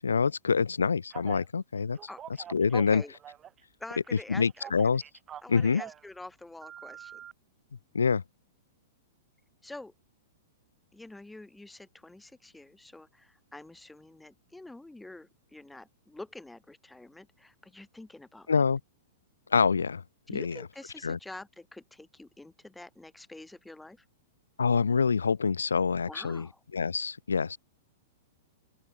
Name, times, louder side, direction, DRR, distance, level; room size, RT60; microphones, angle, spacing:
voice 1, 0.0-2.0 2.5-3.0 4.3-5.0 5.5-5.8 7.9-8.2 18.5-18.8 19.5-20.0 20.3-20.6 21.0-21.2 24.6-26.5 26.7-27.6, left 5 dB, 75° left, 0.3 m, -26 dB
Telephone, 1.1-1.5 2.0-3.6 3.9-6.1 6.6-7.3, right 10 dB, 25° right, 0.8 m, -45 dB
voice 2, 2.7-3.1 3.8-4.7 5.4-7.2 9.6-9.9 10.9-18.5 20.3-24.0 26.1-26.6, left 2 dB, 5° left, 1.0 m, -46 dB
open air
figure-of-eight pair, 105°, 0 cm